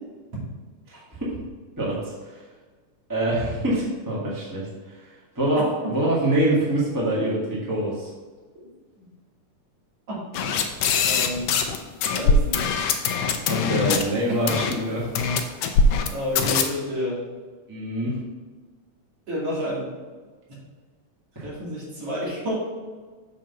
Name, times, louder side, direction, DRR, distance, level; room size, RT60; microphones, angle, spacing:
voice 1, 0.9-1.4 1.8-2.0 2.2-2.4 3.1-8.1 13.5-15.1 17.7-18.2 21.3-21.5, right 1 dB, 10° right, -6 dB, 0.9 m, -25 dB
voice 2, 5.6-5.9 9.0-9.1 10.1-10.2 11.0-11.6 12.1-12.7 16.1-17.2 19.3-19.9 21.4-22.5, equal, 50° right, -6 dB, 3.3 m, -29 dB
sound 1, 10.3-11.8 12.0-14.0 14.5-14.7 15.1-16.1 16.3-16.6, left 5 dB, 85° left, 1.3 m, -22 dB
7.4 x 3.8 x 5.6 m, 1.4 s
omnidirectional pair, 3.5 m